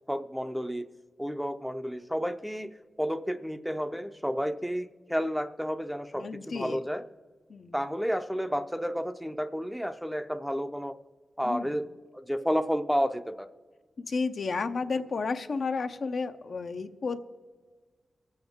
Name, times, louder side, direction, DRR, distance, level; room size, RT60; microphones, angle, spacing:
voice 1, 0.1-0.9 1.2-7.1 7.7-11.0 11.4-13.5, equal, ahead, 10 dB, 0.5 m, -31 dB
voice 2, 6.2-6.8 7.5-7.7 11.4-11.8 14.0-17.2, left 4 dB, 65° left, 8 dB, 0.6 m, -32 dB
22.5 x 7.9 x 3.6 m, 1.5 s
wide cardioid pair, 85°, 0 cm